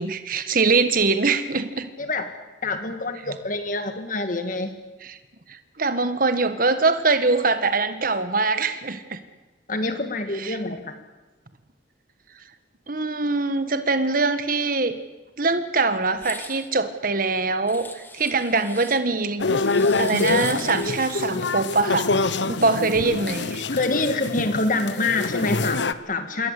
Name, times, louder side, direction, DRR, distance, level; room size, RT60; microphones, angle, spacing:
voice 1, 0.0-1.9 5.0-5.2 5.5-9.2 10.3-10.6 12.9-15.0 15.4-19.4 20.0-22.1 22.5-23.6, right 3 dB, 50° right, 10 dB, 1.6 m, -23 dB
voice 2, 2.6-4.7 9.7-10.9 23.7-26.5, left 3 dB, 45° left, 8 dB, 1.9 m, -26 dB
sound 1, 16.1-16.7 17.7-19.0 19.6-21.3, left 3 dB, 10° left, 1.5 m, -41 dB
sound 2, 19.4-25.9, left 3 dB, 70° left, 1.1 m, -25 dB
27.0 x 22.0 x 8.5 m, 1.2 s
head